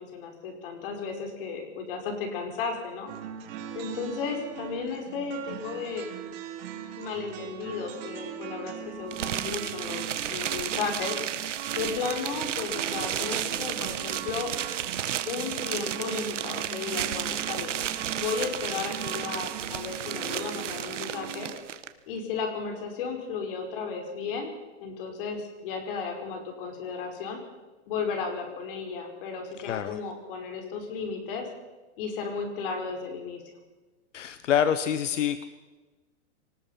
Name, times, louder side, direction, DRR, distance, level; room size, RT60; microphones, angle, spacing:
voice 1, 0.0-3.1 3.7-6.1 7.0-11.2 11.7-14.5 15.3-17.8 18.2-21.5 22.1-27.4 27.9-31.5 32.0-33.4, left 5 dB, 50° left, 4 dB, 5.4 m, -34 dB
sound 1, 3.1-21.5, right 8 dB, 40° right, 3.8 m, -40 dB
sound 2, 9.1-21.9, right 10 dB, 85° right, 1.5 m, -33 dB
voice 2, 29.6-30.0 34.1-35.4, left 9 dB, 85° left, 12 dB, 1.2 m, -26 dB
23.5 x 20.0 x 5.9 m, 1.2 s
hypercardioid pair, 155°, 36 cm